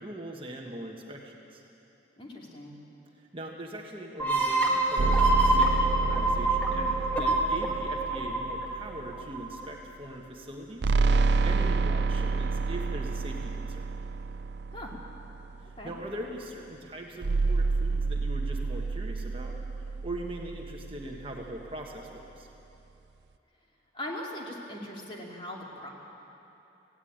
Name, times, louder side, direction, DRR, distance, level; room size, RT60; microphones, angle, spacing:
voice 1, 0.0-1.6 3.2-10.9 11.4-13.9 15.6-22.5, right 1 dB, 30° right, 0 dB, 1.3 m, -41 dB
voice 2, 2.2-2.8 14.7-14.9 15.8-15.9 23.9-25.9, left 1 dB, 30° left, -2 dB, 2.8 m, -40 dB
sound 1, 4.2-9.6, right 2 dB, 10° left, 1.9 m, -26 dB
sound 2, 5.0-9.4 10.8-15.7 17.2-21.6, right 3 dB, 65° right, 0.5 m, -29 dB
18.0 x 16.5 x 8.9 m, 2.9 s
head